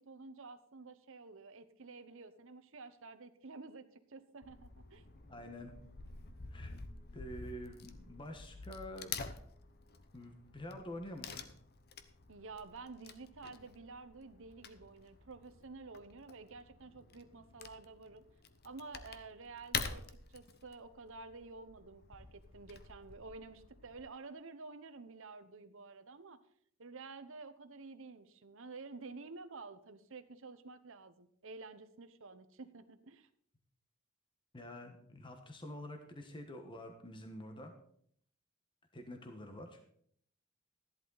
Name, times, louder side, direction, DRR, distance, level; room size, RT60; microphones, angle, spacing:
voice 1, 0.0-5.1 12.3-18.2 18.6-26.4 26.8-33.3, right 3 dB, 65° right, 9 dB, 0.9 m, -51 dB
Wood / Tearing, 4.4-24.0, left 5 dB, 50° left, 0.9 m, -48 dB
voice 2, 5.3-5.7 6.5-6.7 7.1-9.1 10.1-11.4 34.5-37.7 38.9-39.8, left 1 dB, 25° left, 5 dB, 1.3 m, -47 dB
14.0 x 11.0 x 4.0 m, 0.64 s
head